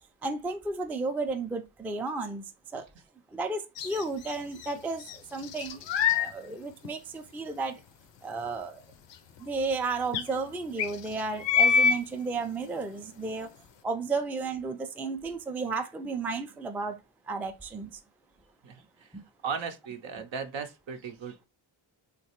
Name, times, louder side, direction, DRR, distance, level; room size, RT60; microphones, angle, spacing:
voice 1, 0.2-2.4 2.7-2.9 3.3-5.9 6.1-7.8 8.2-8.8 9.4-13.5 13.8-17.0 17.3-18.0 19.1-19.2, right 3 dB, 5° right, 0.3 m, -33 dB
sound 1, 3.8-4.7 5.0-6.3 6.8-6.9 9.1-9.2 9.4-9.5 10.1-10.2 10.8-12.0, left 6 dB, 65° left, 0.5 m, -25 dB
voice 2, 19.4-21.5, right 6 dB, 70° right, 0.6 m, -36 dB
3.1 x 2.3 x 2.8 m
cardioid pair, 40°, 48 cm